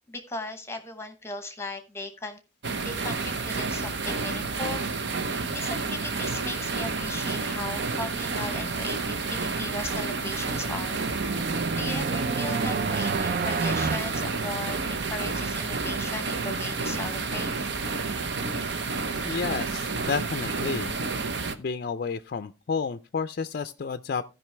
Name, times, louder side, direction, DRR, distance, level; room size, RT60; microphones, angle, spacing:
voice 1, 0.1-2.4 2.8-5.1 5.5-11.0 11.5-17.5, left 2 dB, 15° left, 1.0 m, -37 dB
sound 1, 2.6-21.6, right 4 dB, 65° right, 0.8 m, -30 dB
sound 2, 10.2-15.2, right 4 dB, 50° right, 0.5 m, -31 dB
voice 2, 19.2-21.0 21.6-24.2, left 5 dB, 55° left, 0.4 m, -31 dB
15.5 x 5.4 x 3.3 m
head